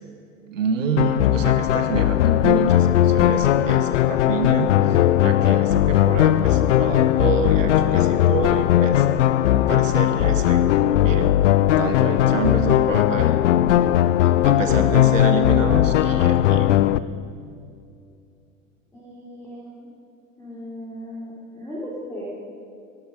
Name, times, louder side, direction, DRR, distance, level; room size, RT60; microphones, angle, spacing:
voice 1, 0.5-9.1 9.5-11.3 11.8-13.4 14.2-16.8, right 5 dB, 70° right, 7 dB, 1.5 m, -28 dB
sound 1, 1.0-17.0, left 12 dB, 60° left, 0.5 m, -18 dB
voice 2, 18.9-19.9 20.4-22.3, equal, 5° left, -7 dB, 3.2 m, -37 dB
19.0 x 12.0 x 5.1 m, 2.5 s
figure-of-eight pair, 85°, 40 cm